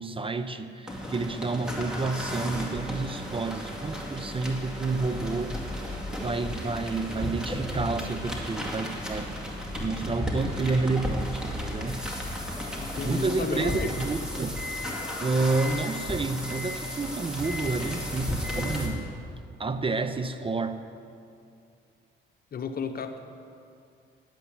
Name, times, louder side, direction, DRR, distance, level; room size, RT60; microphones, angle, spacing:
voice 1, 0.0-5.6 6.1-9.3 9.8-12.6 13.0-14.6 15.2-19.2 19.6-20.8, right 3 dB, 25° right, 10 dB, 0.6 m, -30 dB
sound 1, 0.9-18.9, left 1 dB, 5° right, 2.2 m, -34 dB
voice 2, 12.7-13.9 22.5-23.2, left 5 dB, 50° left, 7 dB, 1.0 m, -33 dB
10.5 x 8.2 x 8.8 m, 2.4 s
cardioid pair, 90°, 20 cm